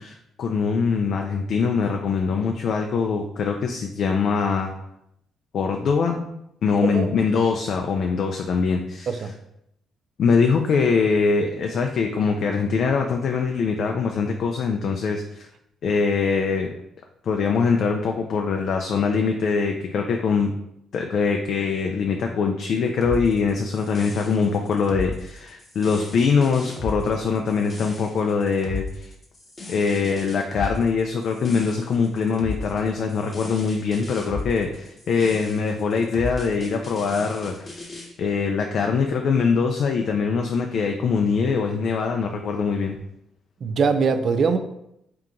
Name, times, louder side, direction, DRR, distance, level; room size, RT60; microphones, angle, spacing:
voice 1, 0.0-4.7 5.5-6.3 6.6-9.1 10.2-15.5 15.8-16.7 17.2-20.5 20.9-29.1 29.7-37.8 38.2-43.0, left 5 dB, 65° left, 3 dB, 0.4 m, -23 dB
sound 1, 23.0-38.1, left 3 dB, 30° left, 0.9 m, -35 dB
voice 2, 43.6-44.6, right 5 dB, 55° right, 8 dB, 0.4 m, -22 dB
3.5 x 2.8 x 3.7 m, 0.79 s
cardioid pair, 90°, 0 cm